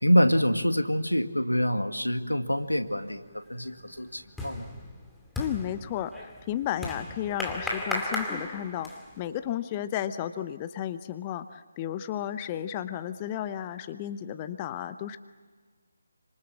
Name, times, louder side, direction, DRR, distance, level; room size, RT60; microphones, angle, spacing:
voice 1, 0.0-3.2 3.5-4.7, equal, 90° left, 8 dB, 2.1 m, -25 dB
sound 1, 2.9-3.1 3.4-9.2, left 1 dB, 5° left, 2.3 m, -36 dB
voice 2, 5.4-8.9 9.2-15.2, left 11 dB, 20° left, 11 dB, 0.8 m, -33 dB
28.0 x 26.0 x 7.5 m, 1.5 s
figure-of-eight pair, 150°, 0 cm